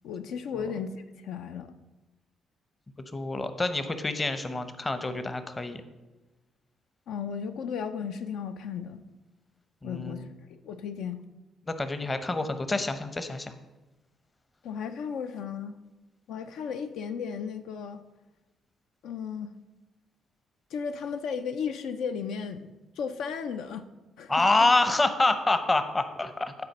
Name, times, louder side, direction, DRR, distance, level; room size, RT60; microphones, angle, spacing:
voice 1, 0.0-1.7 7.1-9.0 9.8-11.2 14.6-15.7 16.3-18.0 19.0-19.5 20.7-23.9 24.2-24.4, left 6 dB, 80° left, 8 dB, 0.4 m, -35 dB
voice 2, 3.1-5.8 9.8-10.3 11.7-13.5 24.3-26.5, left 2 dB, 20° left, 9 dB, 0.7 m, -27 dB
9.5 x 4.1 x 5.4 m, 1.1 s
cardioid pair, 90°, 0 cm